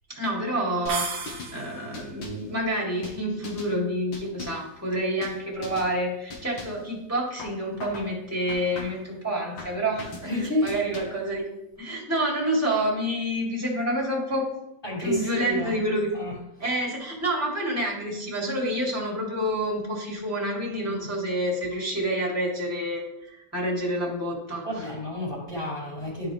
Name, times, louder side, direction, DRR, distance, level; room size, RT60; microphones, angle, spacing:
voice 1, 0.1-11.5 11.8-14.5 15.0-16.1 16.6-24.8, right 1 dB, 10° right, -4 dB, 2.2 m, -28 dB
sound 1, 0.9-1.6 1.9-2.5 3.0-3.7 4.1-4.7 5.2-5.4 5.6-5.9 6.3-6.9 7.4-8.1 8.5-9.1 9.6-10.3 10.7-11.3, left 3 dB, 85° left, 2.0 m, -40 dB
sound 2, 0.9-2.0, right 4 dB, 45° right, 1.1 m, -33 dB
voice 2, 10.2-10.8 14.8-15.8 16.1-16.3 20.8-21.1 24.6-26.3, left 1 dB, 25° left, -9 dB, 3.4 m, -30 dB
12.5 x 4.6 x 3.4 m, 0.88 s
omnidirectional pair, 2.1 m